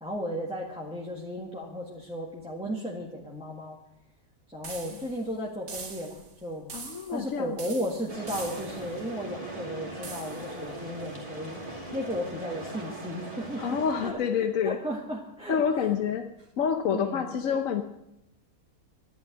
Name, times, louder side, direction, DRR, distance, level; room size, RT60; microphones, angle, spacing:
voice 1, 0.0-3.8 4.5-6.7 7.1-11.6 11.9-15.9 16.9-17.3, equal, 5° right, -2 dB, 1.6 m, -35 dB
sound 1, 4.6-5.2 5.7-6.3 6.7-7.3 7.6-8.9 10.0-10.5, right 4 dB, 65° right, 2.0 m, -42 dB
voice 2, 6.7-7.6 13.6-14.8 15.5-16.3 16.6-17.8, left 7 dB, 65° left, 6 dB, 1.2 m, -27 dB
sound 2, 8.1-14.1, right 2 dB, 25° right, 2.7 m, -40 dB
11.5 x 11.5 x 7.3 m, 0.83 s
omnidirectional pair, 1.6 m